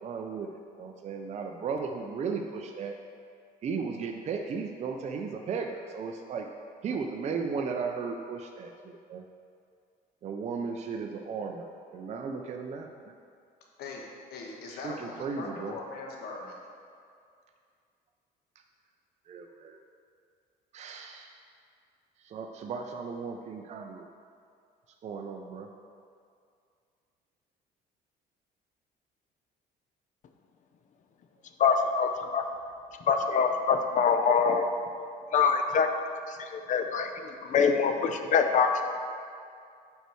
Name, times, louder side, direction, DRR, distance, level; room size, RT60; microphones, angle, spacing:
voice 1, 0.0-3.0 3.6-6.5 6.8-9.2 10.2-12.9 14.7-15.7 19.3-19.8 20.7-21.3 22.2-24.1 25.0-25.7, right 5 dB, 40° right, 3 dB, 0.5 m, -35 dB
voice 2, 14.3-16.6, left 3 dB, 70° left, -1 dB, 1.2 m, -40 dB
voice 3, 31.6-32.4 33.1-34.7 35.3-35.9 36.3-39.0, left 6 dB, 50° left, 6 dB, 0.6 m, -25 dB
5.5 x 4.5 x 6.2 m, 2.3 s
cardioid pair, 110°, 17 cm